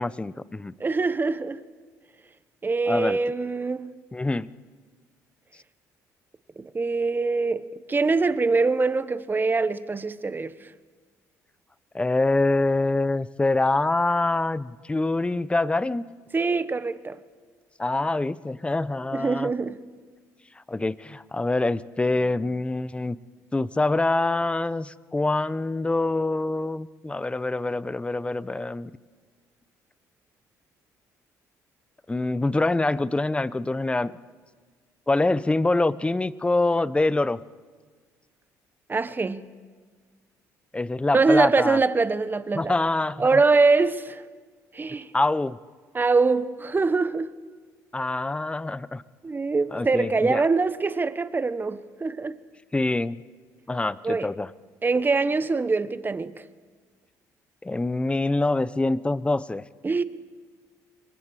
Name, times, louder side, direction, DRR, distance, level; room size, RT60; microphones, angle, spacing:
voice 1, 0.0-0.7 2.9-3.2 4.1-4.5 11.9-16.0 17.8-19.5 20.7-23.2 23.5-28.9 32.1-34.1 35.1-37.4 40.7-41.8 42.5-43.4 45.1-45.6 47.9-49.0 49.7-50.4 52.7-53.2 53.7-54.5 57.6-59.6, left 2 dB, 15° left, 0.8 m, -25 dB
voice 2, 0.8-1.6 2.6-3.9 6.6-7.6 7.9-10.7 16.3-17.2 19.1-19.8 38.9-39.4 41.1-42.7 43.2-44.2 44.7-45.1 45.9-47.3 49.2-52.4 54.0-54.3 54.8-56.4 59.8-60.0, right 4 dB, 25° right, 1.2 m, -23 dB
26.5 x 23.0 x 4.9 m
supercardioid pair, 65°, 8 cm